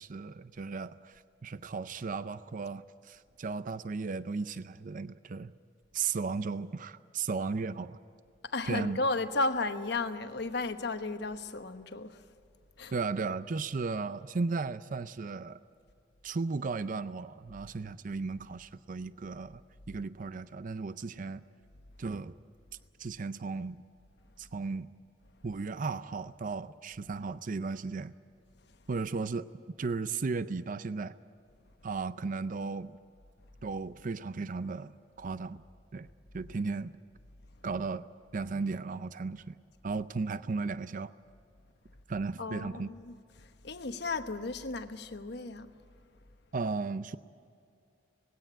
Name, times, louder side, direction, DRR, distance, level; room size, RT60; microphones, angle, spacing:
voice 1, 0.0-5.5 5.9-8.0 8.7-9.0 12.9-15.6 16.2-19.6 19.9-21.5 22.0-22.3 23.0-23.8 24.4-24.9 25.4-28.1 28.9-29.5 29.8-31.1 31.8-33.0 33.6-35.6 35.9-36.1 36.3-37.0 37.6-38.1 38.3-39.6 39.8-41.1 42.1-42.9 46.5-47.2, right 4 dB, 50° right, 0.5 m, -35 dB
voice 2, 8.4-12.3 12.8-12.9 42.4-45.7, left 3 dB, 65° left, 1.1 m, -34 dB
19.5 x 16.5 x 10.0 m
head